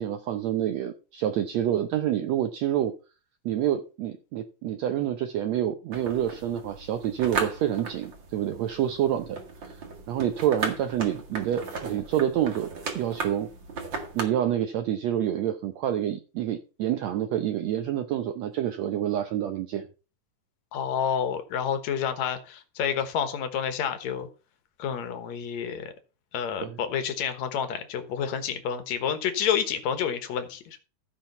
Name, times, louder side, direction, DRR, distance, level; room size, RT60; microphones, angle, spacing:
voice 1, 0.0-2.9 3.5-9.8 10.1-12.7 13.0-13.5 14.1-19.9 26.6-26.8, right 11 dB, 75° right, 8 dB, 1.6 m, -28 dB
sound 1, 5.9-14.2, right 4 dB, 40° right, 2.0 m, -36 dB
voice 2, 20.7-24.3 24.8-25.9 26.3-30.8, left 8 dB, 65° left, 9 dB, 2.3 m, -29 dB
15.0 x 5.1 x 5.5 m, 0.33 s
omnidirectional pair, 3.9 m